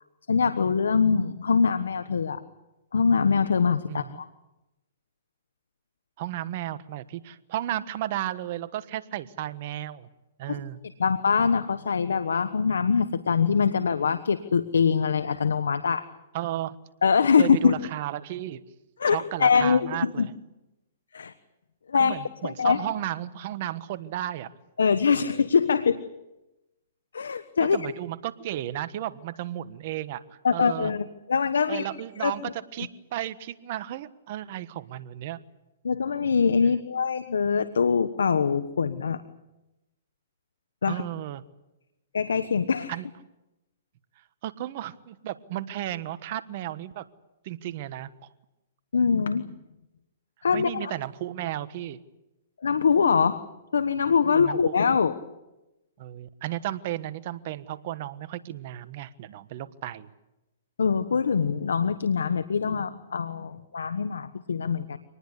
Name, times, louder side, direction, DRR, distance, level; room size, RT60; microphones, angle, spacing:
voice 1, 0.3-2.4 2.9-4.3 10.5-10.6 11.0-16.1 17.0-17.8 19.0-20.3 21.1-21.3 21.9-22.1 22.4-22.8 24.8-26.0 27.1-27.8 30.4-31.8 32.2-32.5 35.8-39.2 40.8-41.0 42.1-42.9 48.9-49.5 50.4-50.9 52.6-53.4 53.7-55.2 60.8-65.0, left 6 dB, 85° left, 12 dB, 1.2 m, -23 dB
voice 2, 3.9-4.2 6.2-10.1 10.4-10.8 16.3-16.8 17.4-18.6 19.1-20.3 21.9-24.5 27.7-30.9 31.7-35.4 36.6-36.8 40.8-41.4 42.9-43.0 44.4-47.0 47.4-48.1 50.5-52.0 54.2-54.8 56.0-60.1, right 13 dB, 50° right, 13 dB, 1.4 m, -34 dB
25.5 x 19.5 x 8.3 m, 0.97 s
hypercardioid pair, 135°, 0 cm